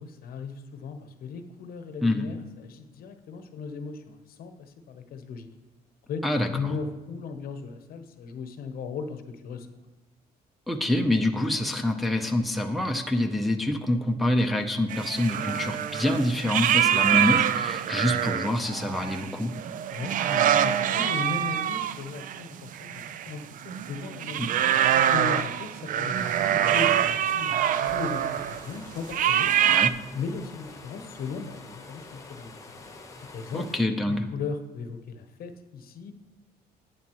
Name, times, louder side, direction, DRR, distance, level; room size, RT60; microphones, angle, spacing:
voice 1, 0.0-5.5 6.1-9.7 19.9-24.5 25.1-27.5 27.9-29.8 30.1-32.8 33.3-33.7 34.1-36.1, left 5 dB, 60° left, 8 dB, 0.9 m, -37 dB
voice 2, 6.2-6.7 10.7-19.5 24.4-24.5 29.7-29.9 33.5-34.3, left 1 dB, ahead, 3 dB, 0.7 m, -26 dB
sound 1, 14.9-28.6 29.1-29.9, right 10 dB, 50° right, 0.4 m, -25 dB
sound 2, 26.2-33.8, left 3 dB, 20° left, 1.1 m, -46 dB
11.0 x 8.3 x 3.0 m, 1.1 s
cardioid pair, 110°, 17 cm